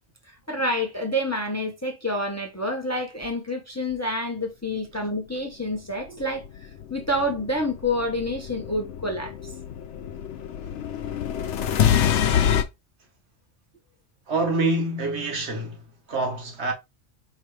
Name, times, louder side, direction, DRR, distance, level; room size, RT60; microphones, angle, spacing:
voice 1, 0.5-9.3, left 1 dB, 15° left, 0.7 m, -28 dB
sound 1, 6.2-12.6, left 9 dB, 80° left, 1.0 m, -26 dB
voice 2, 14.3-15.8 16.1-16.7, right 2 dB, 70° right, 1.4 m, -26 dB
4.9 x 3.1 x 3.1 m
omnidirectional pair, 1.2 m